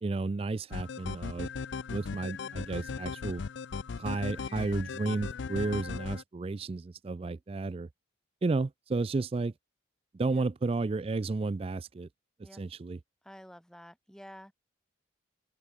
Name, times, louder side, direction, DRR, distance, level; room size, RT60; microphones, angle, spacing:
voice 1, 0.0-1.5 1.9-3.4 4.0-7.9 8.4-9.5 10.1-12.1 12.4-13.0, right 3 dB, 30° right, 0.3 m, -32 dB
sound 1, 0.7-6.2, left 5 dB, 65° left, 0.5 m, -37 dB
voice 2, 13.2-14.5, equal, 5° left, 6.6 m, -50 dB
open air
head